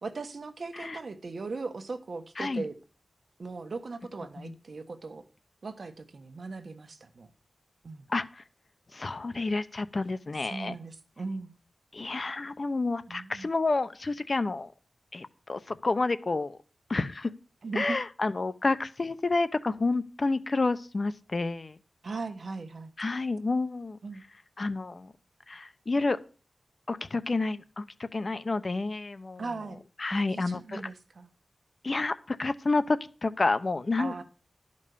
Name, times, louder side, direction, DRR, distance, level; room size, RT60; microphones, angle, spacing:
voice 1, 0.0-2.7 3.4-5.2 5.6-7.3 7.8-8.0 10.4-11.6 13.1-13.5 17.6-18.0 22.0-22.9 24.0-24.2 29.4-29.8 30.1-31.3 34.0-34.2, right 3 dB, 60° right, 1.2 m, -38 dB
voice 2, 8.1-8.4 8.9-10.8 11.9-14.7 15.1-16.6 16.9-17.3 17.7-21.8 23.0-24.0 24.6-25.1 25.5-26.2 26.9-29.5 30.0-30.9 31.8-34.2, left 3 dB, 40° left, 0.7 m, -29 dB
12.5 x 5.3 x 6.8 m
wide cardioid pair, 100°, 0 cm